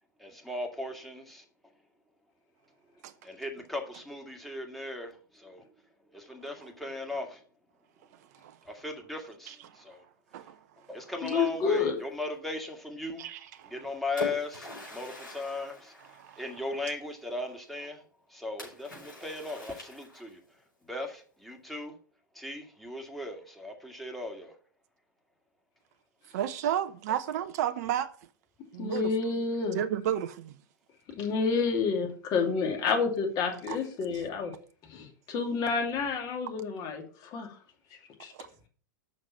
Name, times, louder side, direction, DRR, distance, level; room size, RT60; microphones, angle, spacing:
voice 1, 0.2-1.4 3.2-5.6 6.1-7.4 8.7-10.0 10.9-13.2 13.7-15.9 16.4-18.0 18.3-20.4 20.9-21.9 22.4-24.5, left 2 dB, ahead, 1.9 m, -37 dB
voice 2, 11.2-12.0 28.8-29.8 31.2-34.5 34.9-37.0 37.3-37.5 38.2-38.3, left 5 dB, 40° left, 2.5 m, -29 dB
voice 3, 13.2-14.0 14.9-15.0 16.1-16.6 26.3-28.1 28.7-29.1 29.7-30.5 33.7-33.8 34.1-34.2 38.3-38.5, right 10 dB, 55° right, 0.7 m, -33 dB
Splash splatter, 13.6-16.8 18.6-20.5, left 2 dB, 90° left, 4.9 m, -43 dB
6.5 x 6.2 x 6.2 m
figure-of-eight pair, 95°, 10 cm